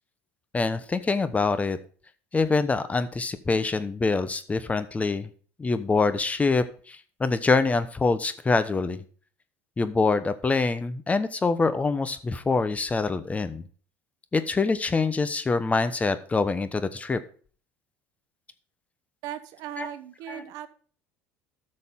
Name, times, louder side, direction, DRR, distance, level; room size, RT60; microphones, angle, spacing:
voice 1, 0.5-1.8 2.3-5.3 5.6-9.0 9.8-13.6 14.3-17.2 19.8-19.9 20.3-20.4, left 4 dB, 20° left, 12 dB, 1.0 m, -25 dB
voice 2, 19.2-20.7, right 10 dB, 70° right, 11 dB, 1.0 m, -37 dB
12.5 x 6.5 x 3.7 m, 0.42 s
supercardioid pair, 85°, 7 cm